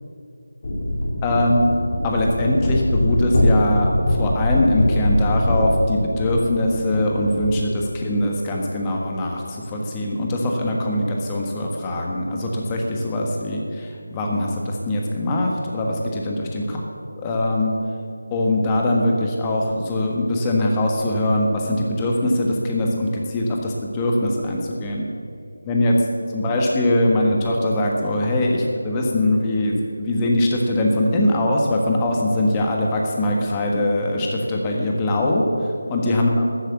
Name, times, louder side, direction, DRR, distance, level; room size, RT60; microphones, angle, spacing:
sound 1, 0.6-7.7, left 1 dB, 40° left, 2.5 m, -23 dB
voice 1, 1.2-1.6 2.0-16.8 17.2-17.7 18.3-25.1 25.6-26.0 26.3-35.5 35.9-36.5, left 1 dB, 15° left, 0 dB, 1.4 m, -22 dB
13.5 x 8.3 x 7.2 m, 2.4 s
figure-of-eight pair, 160°, 0 cm